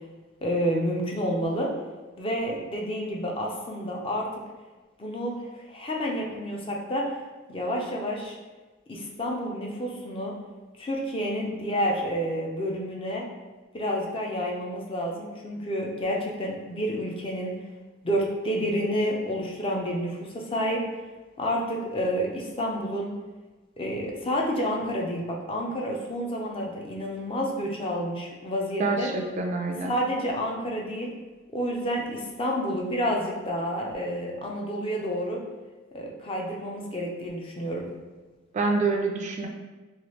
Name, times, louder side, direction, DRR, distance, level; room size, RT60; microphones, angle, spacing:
voice 1, 0.4-1.7 2.2-4.3 5.0-7.1 7.5-8.4 8.9-10.3 10.8-13.3 13.7-17.6 18.0-20.8 21.4-23.1 23.8-29.1 29.8-31.1 31.5-35.4 35.9-37.9, equal, 30° left, -1 dB, 0.5 m, -29 dB
voice 2, 28.8-30.0 38.5-39.5, right 3 dB, 35° right, 2 dB, 0.3 m, -26 dB
3.0 x 2.4 x 3.0 m, 1.2 s
head